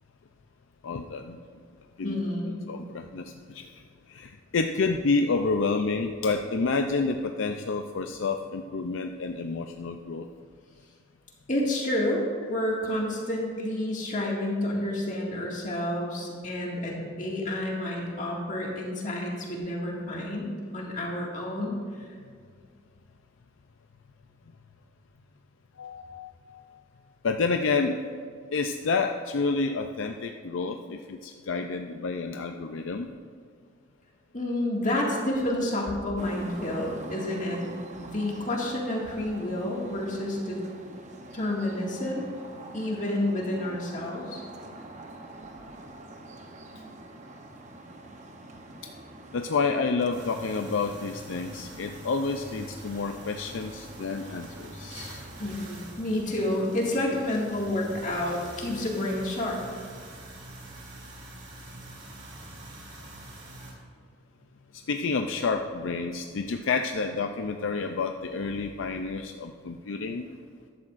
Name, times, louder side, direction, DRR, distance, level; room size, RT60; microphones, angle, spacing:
voice 1, 0.8-1.4 2.0-2.2 2.7-3.8 4.1-10.3 25.8-26.8 27.2-28.0 28.5-33.1 49.3-55.2 64.7-70.4, left 4 dB, 80° left, 5 dB, 0.5 m, -29 dB
voice 2, 2.0-2.6 11.5-21.8 34.3-37.6 38.0-40.6 41.3-42.2 42.7-44.4 55.4-59.6, left 1 dB, 40° left, -2 dB, 2.0 m, -29 dB
sound 1, 36.2-55.7, right 1 dB, 35° right, 0.8 m, -45 dB
sound 2, 50.1-63.7, right 1 dB, 60° right, 2.8 m, -45 dB
14.0 x 11.0 x 2.5 m, 2.1 s
head